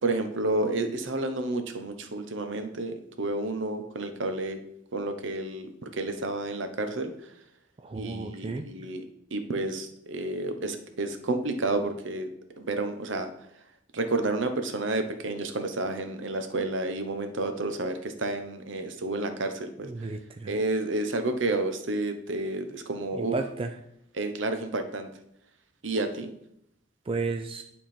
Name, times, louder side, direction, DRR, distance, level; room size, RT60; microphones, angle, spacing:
voice 1, 0.0-4.6 4.9-7.3 7.9-9.0 9.3-12.3 12.6-13.3 13.9-20.1 20.5-23.4 24.1-25.1 25.8-26.3, right 2 dB, 65° right, 8 dB, 0.8 m, -30 dB
voice 2, 7.8-8.6 19.8-20.5 23.2-23.7 27.1-27.6, right 3 dB, 30° right, 5 dB, 0.4 m, -32 dB
10.0 x 3.6 x 4.3 m, 0.77 s
head